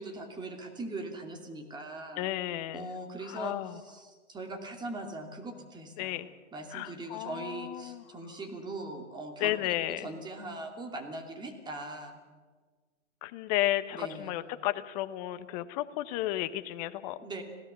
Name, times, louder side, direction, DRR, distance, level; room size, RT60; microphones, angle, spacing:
voice 1, 0.0-2.3 2.7-6.2 6.5-9.6 9.9-12.2 13.9-14.4 17.2-17.4, right 2 dB, 10° right, 3 dB, 2.8 m, -41 dB
voice 2, 2.2-2.9 3.3-3.7 6.0-6.3 6.7-8.0 9.4-10.0 13.2-17.2, left 15 dB, 30° left, 12 dB, 1.1 m, -33 dB
26.5 x 17.5 x 6.8 m, 1.5 s
hypercardioid pair, 130°, 38 cm